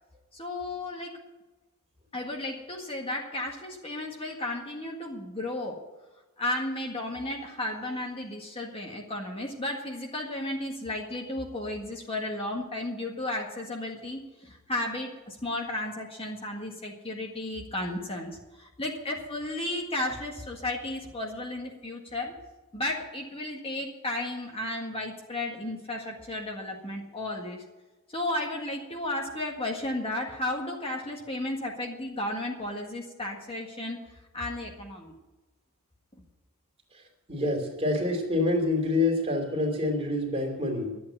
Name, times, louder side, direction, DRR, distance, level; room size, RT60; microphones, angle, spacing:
voice 1, 0.3-1.2 2.1-5.9 6.4-22.4 22.7-27.6 28.1-34.0 34.3-35.1, left 1 dB, 25° left, 1 dB, 1.8 m, -34 dB
voice 2, 37.3-41.0, left 2 dB, 30° right, 2 dB, 2.9 m, -27 dB
11.5 x 8.6 x 9.1 m, 1.1 s
head